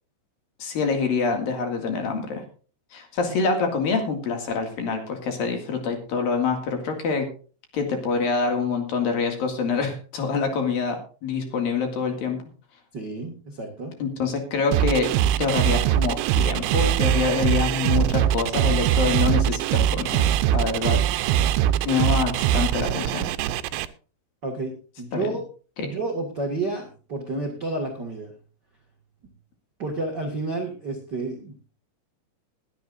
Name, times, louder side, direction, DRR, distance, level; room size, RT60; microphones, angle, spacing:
voice 1, 0.6-2.4 2.9-7.3 7.7-12.4 14.0-20.2 20.5-21.0 21.8-23.3 25.1-25.3 25.8-25.9, left 5 dB, 55° left, 4 dB, 3.5 m, -26 dB
voice 2, 12.9-14.0 24.4-25.4 25.8-28.3 29.8-31.7, right 3 dB, 65° right, 1 dB, 1.0 m, -30 dB
sound 1, 14.7-23.9, right 11 dB, 80° right, 2.9 m, -22 dB
21.0 x 10.5 x 2.6 m, 0.38 s
omnidirectional pair, 5.4 m